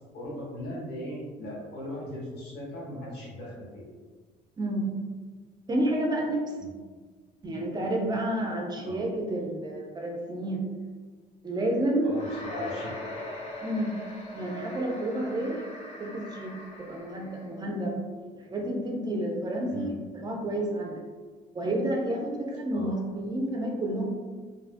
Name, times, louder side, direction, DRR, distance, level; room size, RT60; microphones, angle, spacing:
voice 1, 0.1-3.8 6.6-6.7 8.8-9.0 12.0-13.2 19.7-19.9 22.7-23.0, equal, 75° left, -5 dB, 1.1 m, -39 dB
voice 2, 4.6-5.0 5.7-6.4 7.4-10.7 11.4-12.1 12.5-12.8 13.6-14.0 14.3-15.6 16.0-18.0 18.3-19.9 20.2-21.0 21.5-24.1, right 1 dB, 25° right, 0 dB, 0.4 m, -30 dB
sound 1, 12.1-17.5, left 1 dB, 40° left, 0.5 m, -41 dB
2.7 x 2.3 x 2.5 m, 1.4 s
cardioid pair, 110°, 17 cm